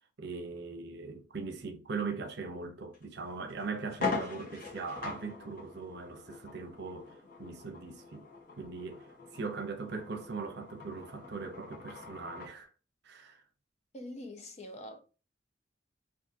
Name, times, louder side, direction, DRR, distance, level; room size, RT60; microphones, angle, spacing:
voice 1, 0.2-8.3 8.6-12.7 13.0-13.4, right 4 dB, 65° right, 0.7 m, -40 dB
sound 1, 2.9-3.1 3.5-3.6 3.9-12.6, left 4 dB, 55° left, 1.0 m, -42 dB
voice 2, 13.9-15.0, left 1 dB, 40° left, 0.6 m, -44 dB
3.6 x 2.6 x 2.6 m
head